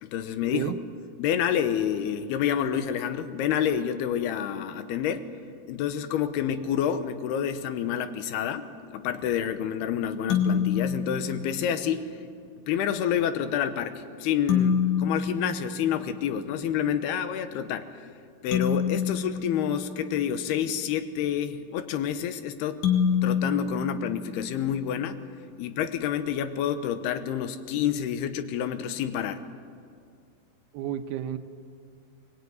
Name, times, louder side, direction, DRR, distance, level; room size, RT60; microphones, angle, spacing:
voice 1, 0.0-0.7 1.2-5.3 5.7-12.3 12.7-17.9 18.4-22.8 23.2-25.2 25.6-29.4, left 9 dB, 80° left, 10 dB, 2.9 m, -28 dB
sound 1, 10.3-12.0 14.5-16.5 18.5-20.6 22.8-24.9, left 7 dB, 50° left, 3.2 m, -28 dB
voice 2, 30.7-31.4, right 11 dB, 80° right, 9 dB, 2.8 m, -31 dB
22.5 x 21.0 x 9.5 m, 2.3 s
omnidirectional pair, 4.7 m